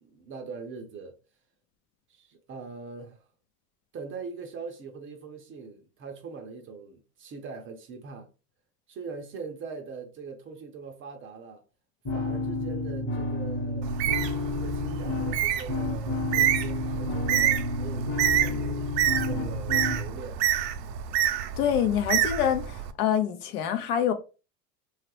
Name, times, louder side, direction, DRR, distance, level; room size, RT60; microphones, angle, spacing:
voice 1, 0.0-1.1 2.1-3.2 3.9-8.3 8.9-11.6 12.1-13.9 14.5-18.9 19.2-20.4, right 4 dB, 25° right, 0.5 m, -42 dB
sound 1, 12.0-20.0, left 2 dB, 25° left, 1.1 m, -31 dB
Bird, 13.8-22.9, right 10 dB, 80° right, 0.6 m, -28 dB
voice 2, 21.6-24.1, left 9 dB, 65° left, 0.7 m, -26 dB
3.1 x 2.4 x 2.9 m
hypercardioid pair, 110°, 49 cm